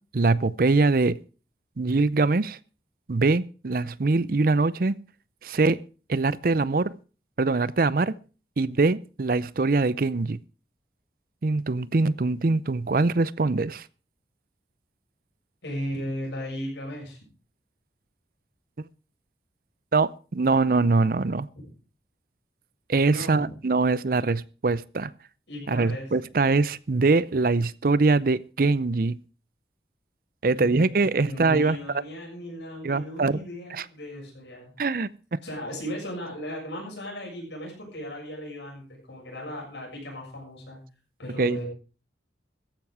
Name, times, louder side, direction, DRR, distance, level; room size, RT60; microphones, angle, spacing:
voice 1, 0.1-1.2 1.8-2.6 3.1-5.0 5.4-5.8 6.1-6.9 7.4-8.1 8.6-10.4 11.4-13.8 18.8-18.9 19.9-21.5 22.9-25.1 25.7-29.2 30.4-31.8 32.8-33.4 33.7-33.8 34.8-35.1 41.4-41.6, right 3 dB, 55° right, 0.6 m, -23 dB
voice 2, 15.6-17.2 21.6-21.7 23.1-23.5 25.5-26.1 30.5-34.7 35.4-40.8 41.2-41.7, equal, 85° left, 7.1 m, -36 dB
14.5 x 10.5 x 4.8 m
head